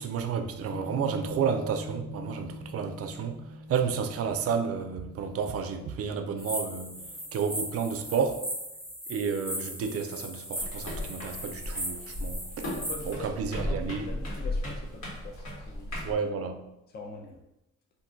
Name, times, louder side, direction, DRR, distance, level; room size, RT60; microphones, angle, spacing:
voice 1, 0.0-3.4 3.7-7.0 7.3-8.4 9.1-12.7 13.1-14.1 16.0-16.6, right 6 dB, 50° right, 0.4 m, -31 dB
Piano, 0.7-7.4, left 1 dB, 85° left, 0.9 m, -44 dB
sound 1, 6.4-13.1, equal, 10° left, 1.0 m, -38 dB
sound 2, 10.6-16.1, left 1 dB, 65° left, 1.4 m, -35 dB
voice 2, 12.8-13.3 13.6-16.3 16.9-17.4, left 3 dB, 30° left, 0.5 m, -44 dB
2.6 x 2.3 x 3.7 m
cardioid pair, 90°, 30 cm